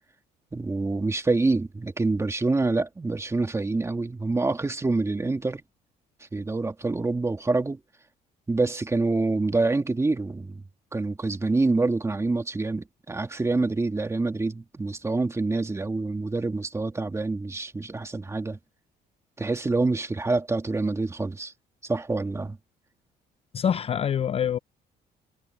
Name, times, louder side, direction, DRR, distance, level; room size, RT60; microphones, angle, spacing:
voice 1, 0.5-5.6 6.3-7.8 8.5-10.6 10.9-18.6 19.4-21.5 21.8-22.6, right 3 dB, 15° right, 2.2 m, -26 dB
voice 2, 23.5-24.6, left 8 dB, 35° left, 0.4 m, -25 dB
cardioid pair, 110°, 17 cm